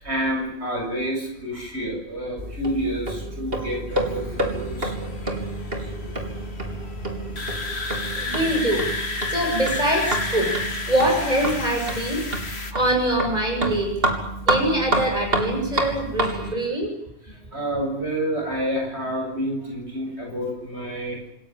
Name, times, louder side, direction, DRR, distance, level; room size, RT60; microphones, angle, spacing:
voice 1, 0.0-5.4 5.8-6.2 17.4-21.2, equal, 90° right, 1 dB, 8.0 m, -29 dB
sound 1, 2.4-16.5, right 1 dB, 60° right, 4.1 m, -29 dB
sound 2, 3.9-12.7, left 3 dB, 75° left, 2.6 m, -32 dB
voice 2, 8.1-12.2 12.7-14.1 14.4-16.9, right 1 dB, 40° right, 2 dB, 8.1 m, -24 dB
27.5 x 17.0 x 9.1 m, 0.79 s
omnidirectional pair, 1.1 m